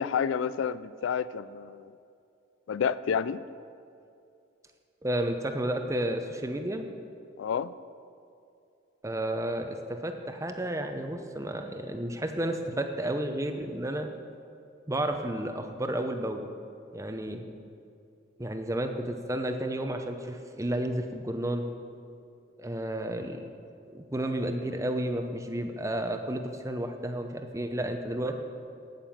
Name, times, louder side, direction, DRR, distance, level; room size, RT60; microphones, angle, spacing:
voice 1, 0.0-1.9 2.7-3.4 7.4-7.7, left 7 dB, 75° left, 16 dB, 0.3 m, -29 dB
voice 2, 5.0-6.9 9.0-14.1 14.9-16.5 16.9-17.4 18.4-21.7 22.6-23.4 23.9-28.4, right 1 dB, 15° right, 6 dB, 0.7 m, -32 dB
9.1 x 9.0 x 7.3 m, 2.5 s
head